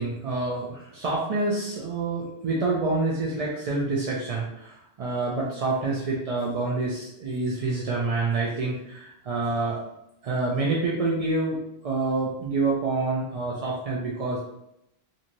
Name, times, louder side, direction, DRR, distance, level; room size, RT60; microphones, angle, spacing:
voice 1, 0.0-9.8 10.2-14.4, right 3 dB, 55° right, -4 dB, 0.4 m, -27 dB
2.9 x 2.6 x 2.6 m, 0.81 s
omnidirectional pair, 1.1 m